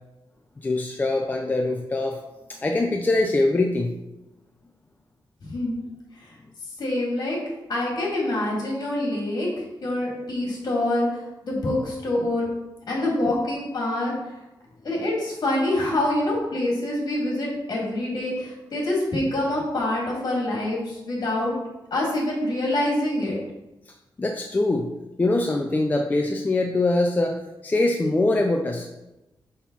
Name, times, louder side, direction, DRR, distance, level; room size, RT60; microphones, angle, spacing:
voice 1, 0.6-2.2 2.5-3.9 24.2-24.9 25.2-28.9, left 2 dB, 20° left, 2 dB, 0.4 m, -23 dB
voice 2, 5.4-5.8 6.1-7.4 7.7-9.5 9.8-12.5 12.9-14.4 14.8-21.5 21.9-23.4, left 1 dB, 50° left, -3 dB, 2.6 m, -26 dB
6.1 x 6.0 x 4.1 m, 0.98 s
wide cardioid pair, 175°, 9 cm